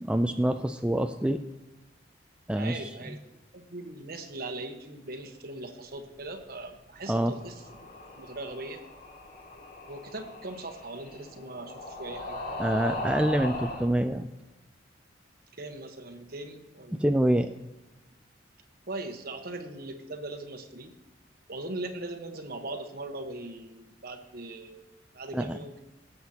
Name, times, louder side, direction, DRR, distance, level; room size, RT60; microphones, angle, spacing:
voice 1, 0.0-1.4 2.5-2.9 7.1-7.3 12.6-14.3 17.0-17.5 25.3-25.6, right 1 dB, 5° right, 6 dB, 0.3 m, -26 dB
voice 2, 2.5-3.2 3.5-7.6 8.1-8.8 9.9-12.4 15.6-17.1 18.9-20.9 21.5-24.8 25.1-25.8, right 2 dB, 55° right, 5 dB, 1.2 m, -40 dB
sound 1, 7.2-13.9, left 1 dB, 50° left, 2.3 m, -39 dB
17.5 x 7.8 x 2.9 m, 1.1 s
head